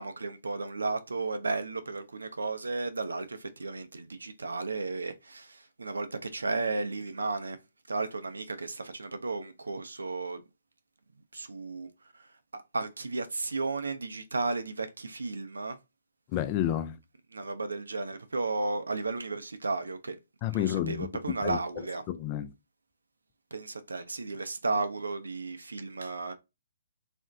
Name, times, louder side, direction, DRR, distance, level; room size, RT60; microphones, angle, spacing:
voice 1, 0.0-7.6 7.9-10.4 11.3-11.9 12.5-15.8 17.3-20.2 20.5-22.0 23.5-26.3, right 3 dB, 85° right, 0.4 m, -34 dB
voice 2, 16.3-17.0 20.4-21.1 21.4-22.5, left 12 dB, 30° left, 0.3 m, -31 dB
2.5 x 2.1 x 3.6 m
hypercardioid pair, 135°, 0 cm